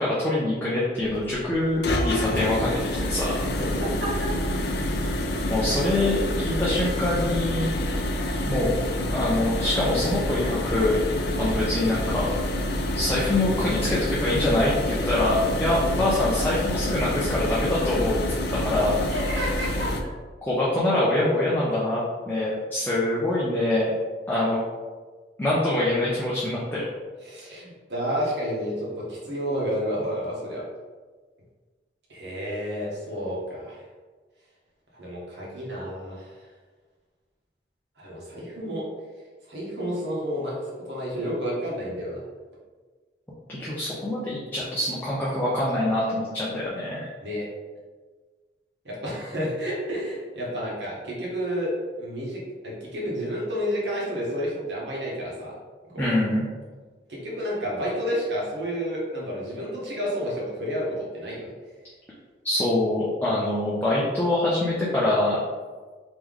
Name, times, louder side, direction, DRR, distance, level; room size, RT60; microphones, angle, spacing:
voice 1, 0.0-3.3 5.5-7.7 8.5-8.7 9.1-11.0 11.4-12.3 12.9-18.2 18.6-19.0 20.4-22.0 22.3-23.9 24.3-24.6 25.4-26.8 43.5-47.1 56.0-56.5 62.4-65.4, left 1 dB, 10° left, -8 dB, 0.6 m, -24 dB
sound 1, 1.0-20.0, left 1 dB, 65° left, 0.4 m, -27 dB
voice 2, 19.1-19.9 27.2-30.6 32.1-33.8 35.0-36.3 38.0-38.8 39.5-40.5 40.8-42.2 47.2-47.5 48.8-51.7 52.0-55.5 55.8-56.1 57.1-61.5, equal, 75° right, -5 dB, 1.3 m, -30 dB
3.3 x 3.1 x 3.6 m, 1.4 s
head